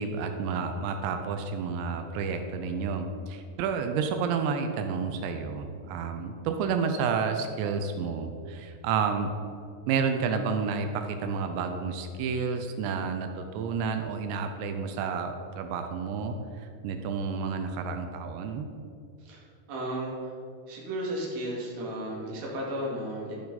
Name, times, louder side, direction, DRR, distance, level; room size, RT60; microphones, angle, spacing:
voice 1, 0.0-9.3 9.9-18.7, right 5 dB, 85° right, 6 dB, 2.9 m, -30 dB
voice 2, 19.7-20.3 20.7-23.3, right 1 dB, 50° right, -4 dB, 2.8 m, -34 dB
12.5 x 6.8 x 4.1 m, 2.4 s
omnidirectional pair, 5.0 m